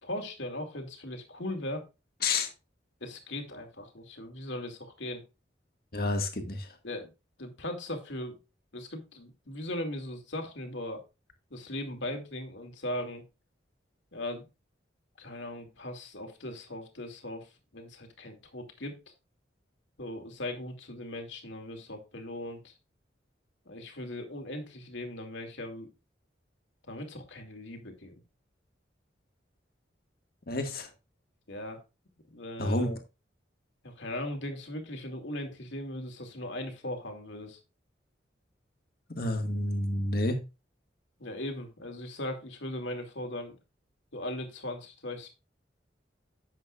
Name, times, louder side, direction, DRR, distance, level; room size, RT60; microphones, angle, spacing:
voice 1, 0.0-1.8 3.0-5.2 6.8-7.1 7.4-8.4 8.7-11.0 11.5-13.2 14.1-14.5 15.2-19.0 20.0-22.8 23.7-25.9 26.9-28.1 31.5-31.8 32.3-32.8 33.8-37.6 41.2-43.6 44.1-45.3, left 1 dB, 85° left, 4 dB, 2.4 m, -38 dB
voice 2, 5.9-6.8 30.5-30.9 32.6-33.0 39.2-40.4, left 2 dB, 55° left, 4 dB, 1.9 m, -29 dB
11.0 x 8.0 x 2.5 m, 0.27 s
head